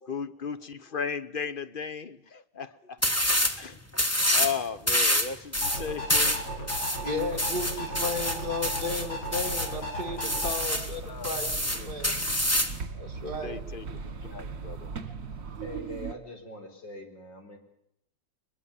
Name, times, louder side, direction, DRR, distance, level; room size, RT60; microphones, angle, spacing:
voice 1, 0.0-3.0 3.6-3.8 4.3-6.4 11.1-11.5 11.7-11.9 13.1-15.0, left 6 dB, 40° left, 13 dB, 0.8 m, -36 dB
sound 1, 3.0-3.6 3.9-4.6 4.9-9.7 10.2-10.9 11.2-12.8, equal, 10° left, 1.4 m, -27 dB
sound 2, 5.5-10.5, equal, 60° left, 7.9 m, -35 dB
voice 2, 7.0-11.5 11.8-12.2 12.9-13.6, left 3 dB, 25° right, 8 dB, 2.6 m, -34 dB
sound 3, 10.4-16.1, right 5 dB, 45° right, 1.9 m, -39 dB
voice 3, 15.6-17.6, left 1 dB, 75° left, 4 dB, 5.4 m, -43 dB
23.0 x 22.0 x 7.2 m, 0.77 s
omnidirectional pair, 2.0 m